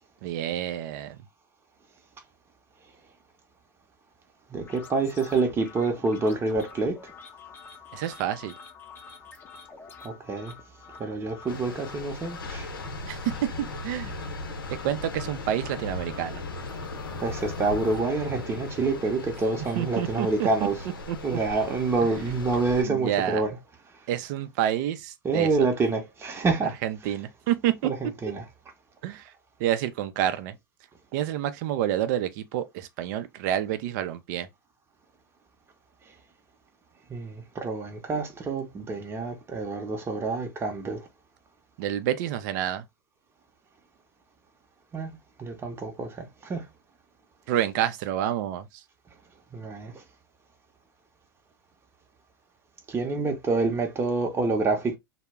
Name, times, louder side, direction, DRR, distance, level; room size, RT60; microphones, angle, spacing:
voice 1, 0.2-1.2 7.9-8.5 13.1-13.3 13.8-14.1 14.8-16.4 19.8-20.5 21.1-21.4 22.0-22.1 22.8-23.4 24.1-25.5 26.8-27.9 29.0-29.3 29.6-30.5 31.1-34.5 41.8-42.8 47.5-48.7, right 11 dB, 55° right, 0.5 m, -28 dB
sound 1, 4.5-18.0, left 5 dB, 20° left, 0.6 m, -48 dB
voice 2, 4.5-7.1 10.0-10.5 11.0-12.7 17.2-20.8 21.2-23.6 25.2-26.8 27.8-28.4 37.1-41.1 44.9-46.6 49.5-50.0 52.9-55.0, right 3 dB, 20° right, 0.8 m, -27 dB
sound 2, 11.5-22.8, left 3 dB, 85° left, 0.6 m, -38 dB
2.2 x 2.0 x 3.4 m
hypercardioid pair, 95°, 11 cm